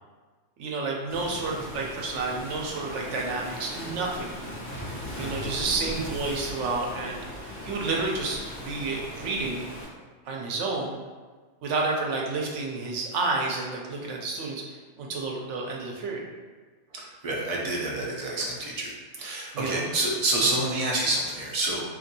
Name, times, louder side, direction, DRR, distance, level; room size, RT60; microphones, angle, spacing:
voice 1, 0.6-4.3 5.2-9.7 10.2-10.9 11.6-14.6 15.0-16.2 19.5-19.9 20.4-20.5, right 3 dB, 80° right, -1 dB, 0.9 m, -30 dB
Waves surf, 1.1-9.8, left 1 dB, 40° left, 1.0 m, -38 dB
voice 2, 16.9-18.9 19.2-21.8, right 2 dB, 50° right, -3 dB, 0.4 m, -28 dB
2.8 x 2.6 x 2.6 m, 1.4 s
omnidirectional pair, 1.2 m